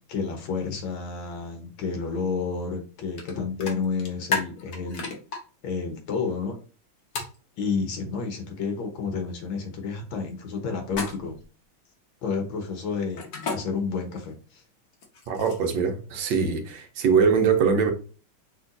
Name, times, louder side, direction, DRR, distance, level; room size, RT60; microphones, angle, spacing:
voice 1, 0.1-5.1 5.6-6.6 7.6-11.4 12.2-14.6, left 5 dB, 70° left, 1.8 m, -30 dB
sound 1, 3.2-3.3 3.6-5.4 7.1-7.4 10.9-11.4 13.2-13.6 14.9-15.8, left 4 dB, 55° left, 1.5 m, -31 dB
voice 2, 15.3-17.9, right 6 dB, 70° right, 1.5 m, -22 dB
6.0 x 2.9 x 2.6 m
omnidirectional pair, 2.2 m